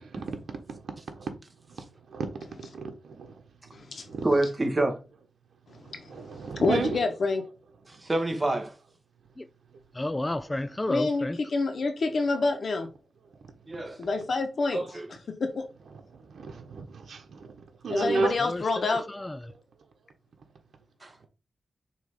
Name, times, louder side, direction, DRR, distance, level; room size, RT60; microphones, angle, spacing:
voice 1, 0.0-1.3 1.7-1.8 2.1-3.4 4.1-4.2 5.7-7.0 10.3-10.6 13.7-13.9 16.1-18.4, right 4 dB, 85° right, 1.1 m, -34 dB
voice 2, 3.7-4.1 5.8-6.1 6.6-7.4 10.9-12.9 14.0-14.8 15.4-15.6 17.9-19.0, left 3 dB, 60° left, 1.4 m, -27 dB
voice 3, 4.2-5.0 7.9-8.7 13.7-14.0 14.7-15.1 21.0-21.1, right 2 dB, 25° right, 1.7 m, -27 dB
voice 4, 9.9-11.4 18.4-19.4, left 1 dB, 20° left, 0.4 m, -31 dB
6.6 x 3.1 x 5.4 m
wide cardioid pair, 105°, 0 cm